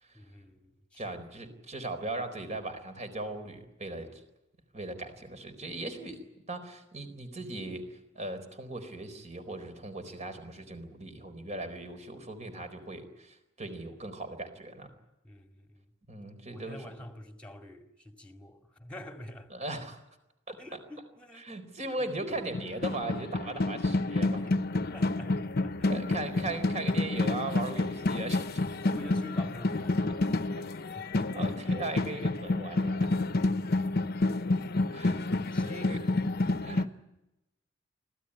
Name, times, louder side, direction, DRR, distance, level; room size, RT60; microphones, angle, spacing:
voice 1, 0.1-1.2 15.2-15.9 16.5-19.5 20.6-22.3 24.7-26.6 28.8-31.3 33.3-34.1 34.4-34.8 35.5-36.0, left 1 dB, 5° left, 2.3 m, -48 dB
voice 2, 1.0-4.2 4.7-6.2 6.5-14.9 16.1-16.9 19.5-20.0 20.5-20.6 21.4-24.5 25.9-28.6 31.1-33.1 34.9-35.3 35.6-36.0 36.6-36.9, right 2 dB, 35° right, 4.2 m, -38 dB
sound 1, 22.3-36.9, left 2 dB, 50° left, 1.0 m, -29 dB
25.0 x 16.5 x 9.9 m
head